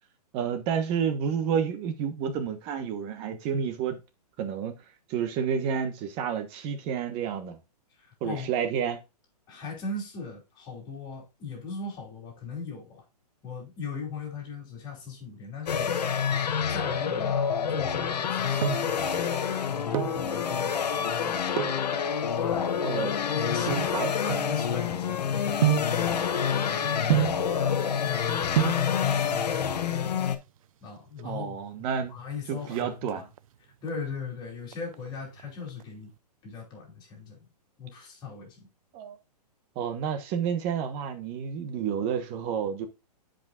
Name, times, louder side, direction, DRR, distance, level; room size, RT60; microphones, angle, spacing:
voice 1, 0.3-4.0 4.4-4.7 5.1-7.6 8.2-9.0 22.8-23.1 23.7-24.1 31.2-32.1 32.5-33.3 38.9-39.2 39.7-42.9, right 7 dB, 30° right, 1.2 m, -30 dB
voice 2, 8.0-8.5 9.5-13.0 13.4-16.2 16.7-17.4 17.7-21.4 22.4-22.9 23.3-23.9 24.2-27.5 28.0-30.2 30.8-33.3 33.8-36.1 36.4-37.5 37.8-38.7, left 5 dB, 20° left, 3.2 m, -39 dB
sound 1, 15.7-30.4, left 7 dB, 80° left, 1.1 m, -28 dB
sound 2, 18.2-19.0 19.7-20.3 21.5-21.9 22.6-25.0 25.6-26.0 27.1-27.5 28.3-28.4 28.6-28.9 30.0-30.6 30.9-31.0 31.2-31.3 31.7-32.1 32.4-33.4 33.9-34.3 34.7-35.8 36.1-36.2, right 15 dB, 55° right, 0.5 m, -29 dB
10.5 x 5.2 x 2.5 m
hypercardioid pair, 145°, 21 cm